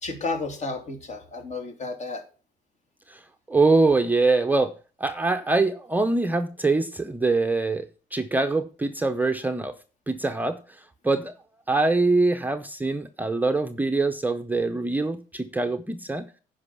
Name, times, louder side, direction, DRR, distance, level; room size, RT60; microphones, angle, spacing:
voice 1, 0.0-2.2, left 3 dB, 45° left, 4 dB, 3.0 m, -32 dB
voice 2, 3.5-4.7 5.0-9.7 10.1-11.3 11.7-16.3, right 3 dB, 10° right, 7 dB, 0.7 m, -24 dB
9.7 x 5.4 x 7.1 m, 0.36 s
cardioid pair, 110°, 17 cm